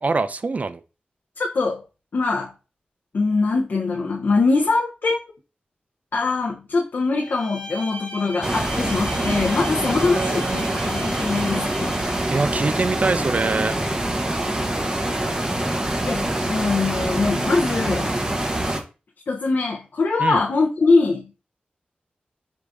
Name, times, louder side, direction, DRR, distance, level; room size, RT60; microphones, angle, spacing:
voice 1, 0.0-0.8 10.0-10.8 12.3-13.8 20.2-20.4, right 3 dB, 45° right, 0.4 m, -24 dB
voice 2, 1.4-1.8 2.1-2.5 3.1-5.2 6.1-12.0 16.0-18.1 19.3-21.4, left 3 dB, 70° left, 0.6 m, -22 dB
Bowed string instrument, 7.2-12.5, equal, 35° left, 1.0 m, -38 dB
sound 1, 8.4-18.8, right 1 dB, 20° right, 0.8 m, -25 dB
4.8 x 2.5 x 3.4 m
wide cardioid pair, 75°, 3 cm